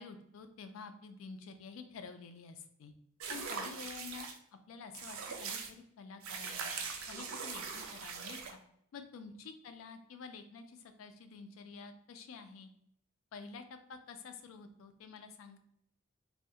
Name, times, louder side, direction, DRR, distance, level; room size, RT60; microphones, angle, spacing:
voice 1, 0.0-2.9 3.3-4.3 4.7-6.7 7.1-8.6 8.9-12.7 13.3-15.6, left 5 dB, 75° left, 8 dB, 0.3 m, -49 dB
sound 1, 3.2-4.4 4.9-5.7 6.2-8.5, right 5 dB, 80° right, 0.4 m, -41 dB
2.2 x 2.0 x 2.7 m, 0.72 s
head